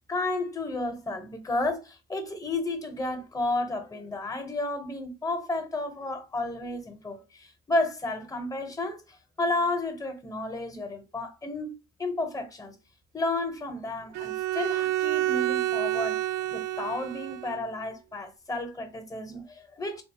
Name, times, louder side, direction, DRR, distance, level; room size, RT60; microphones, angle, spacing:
voice 1, 0.1-11.7 12.0-12.7 13.1-20.0, left 2 dB, 20° left, 0.9 m, -32 dB
Bowed string instrument, 14.1-17.6, right 14 dB, 80° right, 0.4 m, -29 dB
3.8 x 2.0 x 3.5 m
cardioid pair, 110°, 17 cm